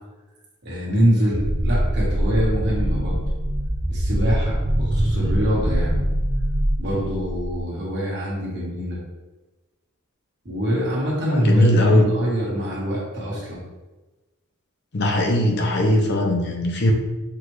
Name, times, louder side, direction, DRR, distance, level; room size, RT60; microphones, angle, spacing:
voice 1, 0.6-3.2 3.9-6.1 6.8-9.0 10.4-13.6, equal, 50° right, -5 dB, 1.5 m, -24 dB
sound 1, 1.3-7.6, right 1 dB, 15° right, 0.5 m, -23 dB
voice 2, 11.4-12.1 14.9-16.9, equal, 50° left, 1 dB, 0.7 m, -19 dB
6.0 x 2.4 x 3.1 m, 1.1 s
head